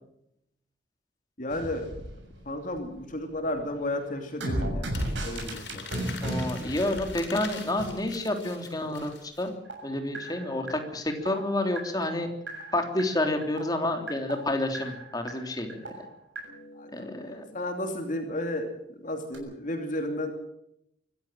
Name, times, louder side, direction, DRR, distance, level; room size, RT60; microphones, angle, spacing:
voice 1, 1.4-1.9 2.4-4.9 5.2-5.9 16.7-20.3, left 1 dB, 45° left, 4 dB, 2.8 m, -33 dB
sound 1, 1.5-3.0 3.3-7.9 9.6-17.6 19.3-19.4, right 1 dB, 90° right, 6.9 m, -36 dB
Crumpling crinkling, 4.9-9.5, left 6 dB, 85° left, 6.4 m, -43 dB
voice 2, 6.2-9.5 9.8-12.3 12.7-15.9 16.9-17.4, left 1 dB, 20° left, 5 dB, 3.3 m, -29 dB
25.0 x 15.0 x 7.6 m, 0.77 s
head